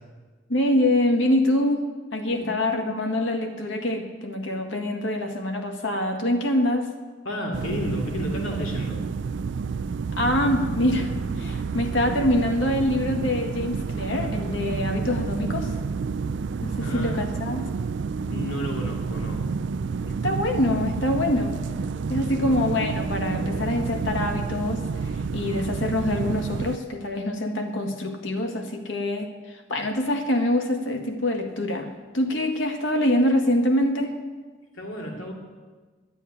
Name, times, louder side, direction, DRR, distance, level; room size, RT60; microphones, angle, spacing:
voice 1, 0.5-1.8 2.1-6.9 10.2-15.7 16.6-17.6 20.0-21.5 22.1-24.8 25.3-34.1, left 1 dB, 70° left, 4 dB, 1.8 m, -25 dB
voice 2, 2.3-2.6 7.2-9.0 16.8-17.2 18.3-19.4 22.3-22.5 34.7-35.3, equal, 90° left, 1 dB, 2.4 m, -32 dB
sound 1, 7.5-26.8, right 5 dB, 65° right, 0.4 m, -29 dB
10.5 x 9.8 x 9.8 m, 1.4 s
head